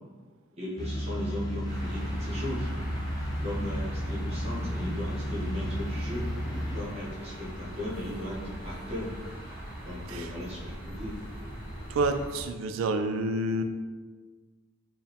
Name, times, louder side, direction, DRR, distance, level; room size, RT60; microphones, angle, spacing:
voice 1, 0.6-2.7 3.4-6.3 6.7-9.1 9.9-11.2, left 1 dB, 30° right, -6 dB, 1.1 m, -37 dB
sound 1, 0.8-6.8, equal, 20° left, 0.4 m, -33 dB
sound 2, 1.6-12.4, equal, 10° right, 1.1 m, -40 dB
voice 2, 11.9-13.6, right 2 dB, 85° right, 7 dB, 0.3 m, -28 dB
4.4 x 2.2 x 3.4 m, 1.4 s
head